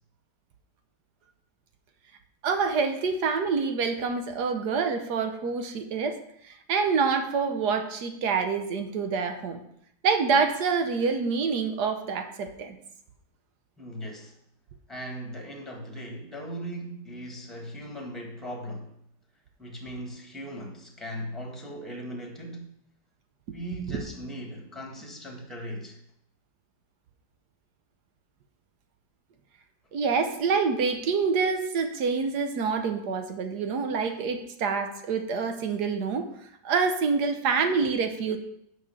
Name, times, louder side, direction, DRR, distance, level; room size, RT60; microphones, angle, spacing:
voice 1, 2.4-6.2 6.4-9.6 10.0-12.8 29.9-36.3 36.6-38.4, right 5 dB, 65° right, 1.3 m, -26 dB
voice 2, 13.8-14.4 14.9-18.9 19.6-22.7 23.5-26.0, right 1 dB, ahead, 1.3 m, -38 dB
6.3 x 5.9 x 6.9 m
omnidirectional pair, 2.1 m